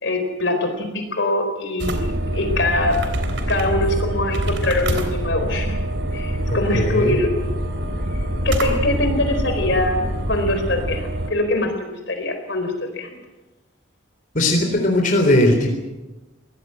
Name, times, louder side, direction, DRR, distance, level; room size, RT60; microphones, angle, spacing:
voice 1, 0.0-3.0 3.5-5.8 6.1-7.3 8.4-10.0 10.3-13.2, left 2 dB, 60° left, 6 dB, 4.3 m, -23 dB
sound 1, 1.8-11.3, right 1 dB, 60° right, 3.4 m, -25 dB
voice 2, 6.5-7.2 14.3-15.7, left 1 dB, 40° left, 2 dB, 3.7 m, -18 dB
23.0 x 18.0 x 7.9 m, 1.1 s
head